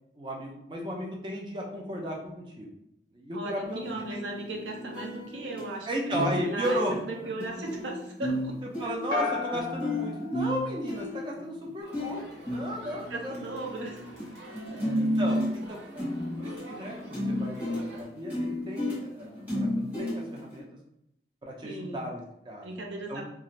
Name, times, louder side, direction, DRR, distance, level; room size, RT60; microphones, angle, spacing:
voice 1, 0.2-2.7 3.1-4.2 5.9-7.0 8.6-13.3 13.6-13.7 15.0-16.1 16.4-20.6 21.4-22.7 23.1-23.2, equal, 25° right, -1 dB, 0.4 m, -35 dB
voice 2, 3.3-8.6 13.1-14.0 14.7-14.8 21.6-22.1 22.6-23.2, right 2 dB, 85° right, 1 dB, 0.6 m, -37 dB
sound 1, 3.7-5.7 6.1-6.4 6.6-14.3 14.5-20.6, left 1 dB, 10° right, 1.0 m, -33 dB
sound 2, 9.1-11.4, left 5 dB, 75° left, 0.5 m, -35 dB
Crowd, 11.8-18.0, right 1 dB, 65° right, 1.0 m, -49 dB
2.4 x 2.4 x 2.9 m, 0.81 s
head